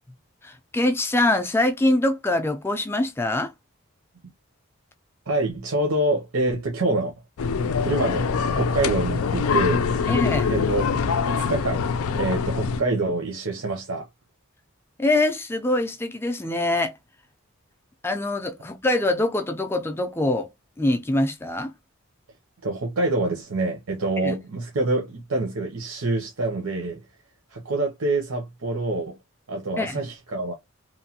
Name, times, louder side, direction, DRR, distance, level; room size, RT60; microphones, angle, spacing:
voice 1, 0.4-3.5 10.1-10.5 15.0-16.9 18.0-20.5 20.8-21.7 24.2-24.3 29.8-30.0, left 2 dB, 10° left, 0.3 m, -24 dB
voice 2, 5.3-7.1 7.8-10.1 10.5-14.1 22.6-27.0 27.5-29.1 29.5-30.5, right 2 dB, 80° right, 0.7 m, -26 dB
sound 1, 7.4-12.8, left 5 dB, 80° left, 0.4 m, -24 dB
3.1 x 2.2 x 2.7 m
head